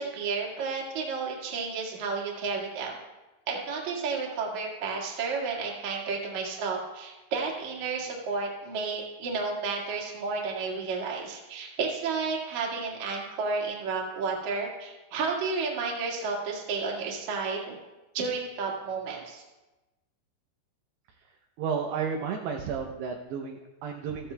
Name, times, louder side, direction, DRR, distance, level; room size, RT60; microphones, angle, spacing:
voice 1, 0.0-3.0 3.5-17.8 18.1-19.4, right 4 dB, 50° right, -2 dB, 2.5 m, -32 dB
voice 2, 21.6-24.3, right 6 dB, 80° right, 2 dB, 2.5 m, -32 dB
14.5 x 13.0 x 2.3 m, 1.1 s
omnidirectional pair, 5.6 m